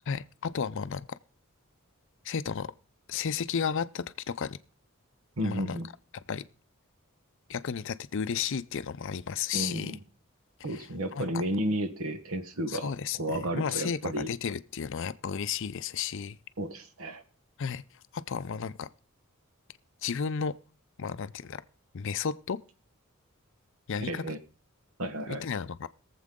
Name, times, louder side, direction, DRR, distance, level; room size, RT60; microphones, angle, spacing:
voice 1, 0.1-1.2 2.2-2.7 3.1-4.6 5.4-5.8 6.3-6.4 7.5-9.9 10.7-10.9 11.1-11.4 12.7-16.4 17.6-17.8 18.1-18.9 20.0-20.6 21.0-21.6 21.9-22.6 23.9-24.2 25.3-25.9, left 6 dB, 60° left, 0.5 m, -33 dB
voice 2, 5.4-5.9 9.5-10.0 10.6-14.3 16.6-17.2 24.0-24.4 25.0-25.4, right 1 dB, 75° right, 1.3 m, -32 dB
21.5 x 7.5 x 3.7 m
head